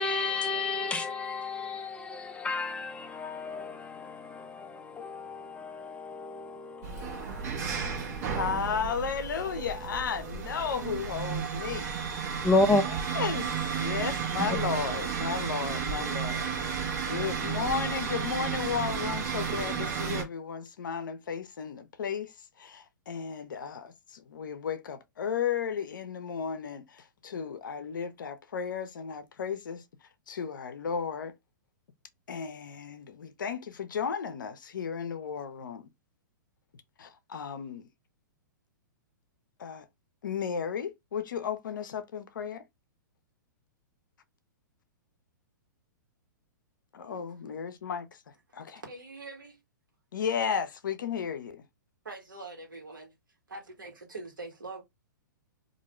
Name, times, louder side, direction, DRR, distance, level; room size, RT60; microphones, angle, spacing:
voice 1, 0.0-8.4 12.4-12.8 14.4-14.5, left 2 dB, 10° left, 0.4 m, -31 dB
sound 1, 6.8-20.2, right 6 dB, 55° right, 0.9 m, -33 dB
voice 2, 8.4-11.9 12.3-12.5 13.1-13.4 13.7-29.8 30.3-31.3 32.3-35.9 37.0-37.9 39.6-39.9 40.2-42.6 46.9-48.1 48.5-48.8 50.1-51.6, left 7 dB, 75° left, 0.5 m, -34 dB
voice 3, 48.8-49.6 52.0-53.1 53.5-54.8, right 3 dB, 85° right, 1.2 m, -43 dB
2.4 x 2.2 x 2.9 m
hypercardioid pair, 115°, 11 cm